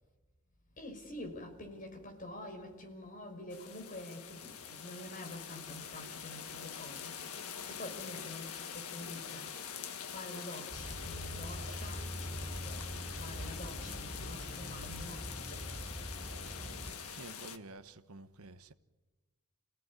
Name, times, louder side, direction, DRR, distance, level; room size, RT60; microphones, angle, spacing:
voice 1, 0.8-9.6 10.0-15.8, left 1 dB, 35° left, 5.4 m, -47 dB
sound 1, 3.5-17.6, left 7 dB, 85° left, 1.6 m, -44 dB
sound 2, 10.7-16.9, equal, 40° right, 6.0 m, -43 dB
voice 2, 17.1-18.7, right 2 dB, 80° right, 1.2 m, -50 dB
29.5 x 18.0 x 9.8 m
head